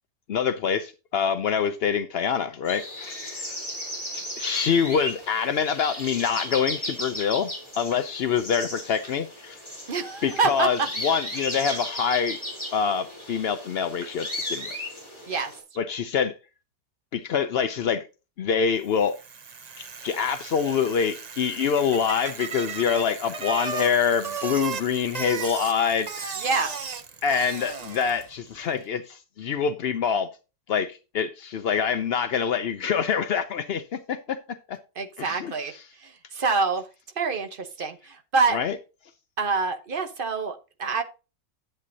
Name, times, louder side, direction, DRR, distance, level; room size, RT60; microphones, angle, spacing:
voice 1, 0.3-3.4 4.1-7.5 7.8-9.6 10.2-12.4 12.7-14.8 15.8-16.3 17.1-18.0 18.4-19.2 20.0-26.3 27.2-30.3 30.7-34.8 35.2-35.7 38.5-38.8, left 7 dB, 80° left, 0.5 m, -25 dB
sound 1, 2.6-15.6, left 1 dB, 15° left, 3.8 m, -35 dB
voice 2, 9.9-10.9 15.3-15.5 26.4-26.8 35.0-36.8 37.2-38.6 39.4-41.0, right 4 dB, 40° right, 0.9 m, -26 dB
Bicycle, 18.9-28.4, right 5 dB, 55° right, 0.4 m, -36 dB
10.5 x 7.9 x 2.7 m
omnidirectional pair, 1.8 m